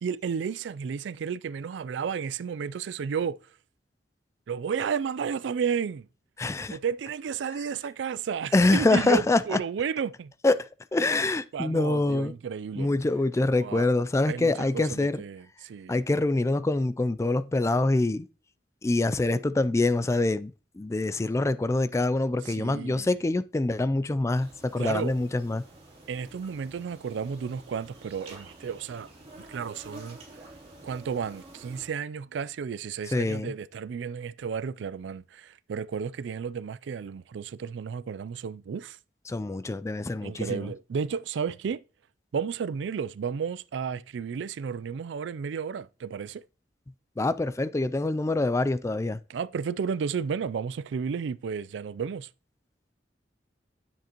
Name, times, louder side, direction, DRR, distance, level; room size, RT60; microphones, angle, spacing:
voice 1, 0.0-3.4 4.5-6.1 6.7-10.3 11.5-12.9 13.6-13.9 14.3-16.0 22.4-23.1 24.8-25.2 26.1-29.1 29.4-30.2 30.8-39.0 40.2-41.8 42.3-46.4 49.3-52.3, right 6 dB, 80° right, 0.4 m, -32 dB
voice 2, 6.4-6.8 8.5-9.4 10.4-10.6 10.9-12.3 12.8-15.2 15.9-18.3 18.8-20.5 20.8-25.6 33.1-33.5 39.3-40.7 47.2-49.2, left 2 dB, 15° left, 0.3 m, -25 dB
sound 1, 24.3-31.9, right 2 dB, 35° right, 3.2 m, -49 dB
9.3 x 7.4 x 2.9 m
head